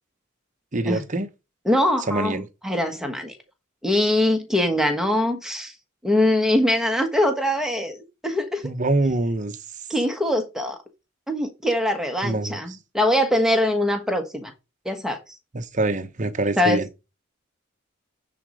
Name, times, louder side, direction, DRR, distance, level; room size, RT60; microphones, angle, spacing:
voice 1, 0.7-1.3 2.1-2.5 8.6-9.6 12.2-12.8 15.5-16.9, right 2 dB, 35° right, 0.8 m, -25 dB
voice 2, 1.6-3.3 3.8-5.7 6.0-8.6 9.9-10.8 11.3-14.5 14.8-15.4 16.6-17.1, left 1 dB, ahead, 1.3 m, -23 dB
9.6 x 4.2 x 5.0 m
head